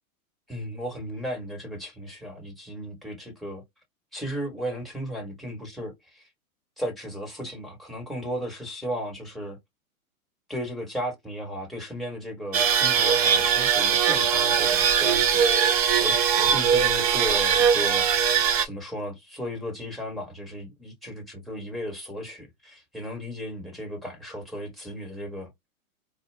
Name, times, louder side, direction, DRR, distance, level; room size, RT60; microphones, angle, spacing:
voice 1, 0.5-3.6 4.1-6.3 6.8-9.6 10.5-18.1 18.6-25.5, equal, ahead, 1.3 m, -35 dB
sound 1, 12.5-18.6, right 7 dB, 25° right, 0.4 m, -21 dB
4.4 x 2.2 x 3.4 m
hypercardioid pair, 135°, 44 cm